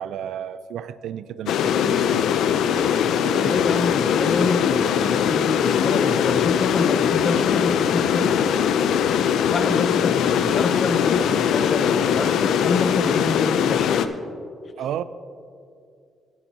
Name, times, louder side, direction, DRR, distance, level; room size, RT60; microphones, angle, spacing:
voice 1, 0.0-2.2 3.2-3.6 14.8-15.0, right 10 dB, 80° right, 0.3 m, -32 dB
sound 1, 1.5-14.1, left 8 dB, 80° left, 0.4 m, -21 dB
voice 2, 3.4-8.4 9.5-14.1, left 4 dB, 40° left, 0.7 m, -27 dB
17.5 x 8.8 x 2.8 m
cardioid pair, 90°, 0 cm